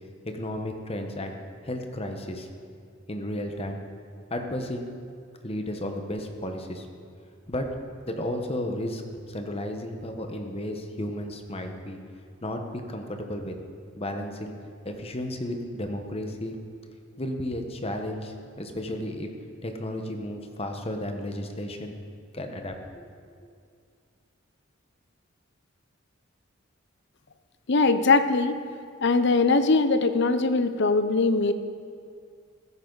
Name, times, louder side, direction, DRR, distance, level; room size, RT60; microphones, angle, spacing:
voice 1, 0.2-1.4 1.6-2.5 3.1-3.8 4.3-4.9 5.4-6.9 7.5-7.7 8.0-9.0 9.3-12.0 12.4-13.5 14.0-14.5 14.8-16.6 17.2-19.3 19.6-22.0 22.3-22.8, left 1 dB, 30° left, 4 dB, 1.1 m, -33 dB
voice 2, 27.7-28.6 29.0-31.5, left 3 dB, 60° left, 10 dB, 0.7 m, -21 dB
15.5 x 13.5 x 4.0 m, 2.3 s
head